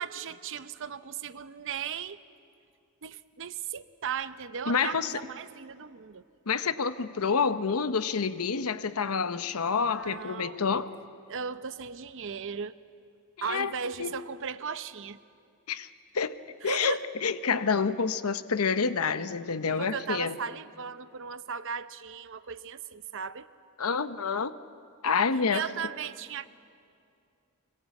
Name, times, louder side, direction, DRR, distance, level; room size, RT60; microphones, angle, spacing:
voice 1, 0.0-2.2 3.0-6.2 9.9-10.6 11.3-12.8 13.4-15.2 16.6-17.0 19.7-23.5 25.5-26.5, right 6 dB, 60° right, 14 dB, 0.7 m, -36 dB
voice 2, 4.7-5.2 6.5-10.9 13.4-13.7 14.0-14.1 15.7-15.9 16.1-16.4 16.6-20.4 23.8-24.5 25.0-25.6, left 5 dB, 90° left, 12 dB, 0.9 m, -28 dB
24.5 x 21.5 x 8.3 m, 2.4 s
head